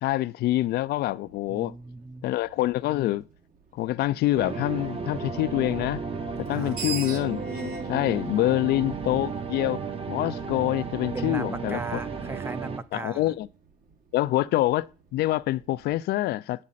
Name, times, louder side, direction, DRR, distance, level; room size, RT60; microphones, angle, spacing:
voice 1, 0.0-1.7 2.2-3.3 3.7-6.0 6.4-9.8 10.1-12.0 12.9-13.5 14.1-16.6, left 15 dB, 70° left, 0.5 m, -26 dB
Fixed-wing aircraft airplane, 0.6-15.9, right 5 dB, 50° right, 1.8 m, -52 dB
voice 2, 1.5-2.3 6.5-6.8 8.4-8.5 11.1-13.3, right 2 dB, 15° right, 0.4 m, -37 dB
sound 1, 4.3-12.8, right 5 dB, 35° right, 1.1 m, -34 dB
Screech, 6.4-9.6, right 5 dB, 70° right, 1.5 m, -37 dB
8.7 x 7.3 x 4.0 m
cardioid pair, 110°, 17 cm